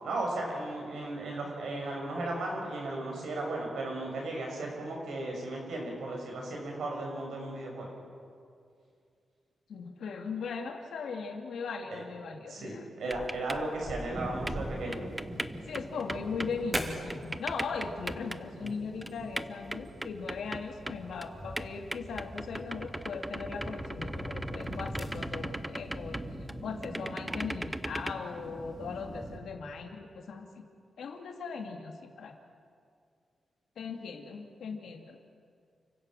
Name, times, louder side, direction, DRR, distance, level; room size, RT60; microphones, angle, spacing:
voice 1, 0.0-7.9 11.9-12.0 12.5-15.1, right 2 dB, 90° right, -1 dB, 6.4 m, -35 dB
voice 2, 9.7-12.9 15.7-26.2 26.6-30.6 31.0-32.3 33.8-35.2, left 5 dB, 90° left, 3 dB, 2.4 m, -39 dB
sound 1, 13.1-18.4 18.7-18.8 19.0-21.3 21.6-26.5 26.8-28.1, right 1 dB, 10° right, 0.6 m, -38 dB
sound 2, 14.1-29.4, right 1 dB, 25° right, 3.3 m, -42 dB
29.5 x 16.5 x 6.4 m, 2.3 s
wide cardioid pair, 145°, 0 cm